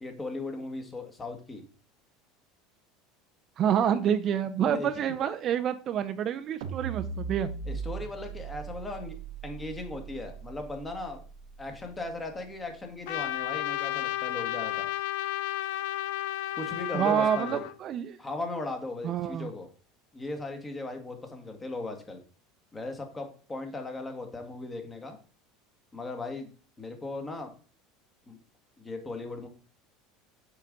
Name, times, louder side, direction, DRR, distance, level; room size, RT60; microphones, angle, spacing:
voice 1, 0.0-1.6 4.6-4.9 7.7-9.1 9.4-11.2 11.6-14.8 16.5-17.7 18.2-19.7 20.1-22.2 22.7-25.2 25.9-26.5 26.8-27.5 28.3-28.4 28.8-29.5, left 2 dB, 20° left, 4 dB, 1.5 m, -37 dB
voice 2, 3.6-7.5 16.9-18.2 19.0-19.5, right 9 dB, 45° right, 11 dB, 0.4 m, -28 dB
sound 1, 6.6-12.9, right 6 dB, 80° right, 0.9 m, -39 dB
Trumpet, 13.1-17.7, left 14 dB, 75° left, 0.3 m, -32 dB
6.7 x 4.8 x 3.9 m, 0.39 s
supercardioid pair, 115°, 0 cm